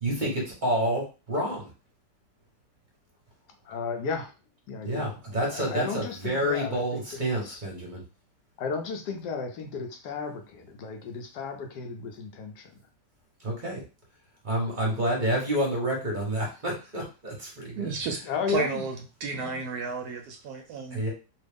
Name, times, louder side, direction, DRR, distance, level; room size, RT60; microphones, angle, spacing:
voice 1, 0.0-1.7 4.8-8.0 13.4-13.8 14.4-18.2 20.9-21.1, right 1 dB, 35° right, -3 dB, 0.9 m, -29 dB
voice 2, 3.6-4.3 4.7-7.6 8.6-12.7 18.2-18.9 19.3-19.7, left 5 dB, 75° left, 4 dB, 1.2 m, -34 dB
voice 3, 17.8-18.2 18.5-21.1, right 4 dB, 70° right, 3 dB, 1.0 m, -32 dB
3.1 x 2.3 x 3.4 m, 0.32 s
omnidirectional pair, 1.9 m